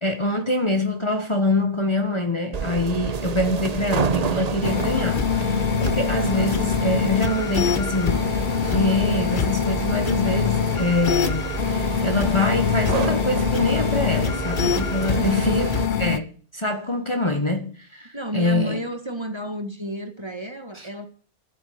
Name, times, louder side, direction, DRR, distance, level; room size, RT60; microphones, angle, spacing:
voice 1, 0.0-8.3 8.7-15.7 16.0-18.8 20.7-20.9, left 2 dB, 25° left, 1.3 m, -25 dB
sound 1, 2.5-15.9, right 5 dB, 40° right, 0.8 m, -29 dB
sound 2, 4.6-16.2, left 7 dB, 50° left, 0.8 m, -24 dB
voice 2, 15.0-15.6 18.1-21.1, right 1 dB, 20° right, 1.8 m, -31 dB
12.0 x 7.9 x 8.7 m
omnidirectional pair, 1.2 m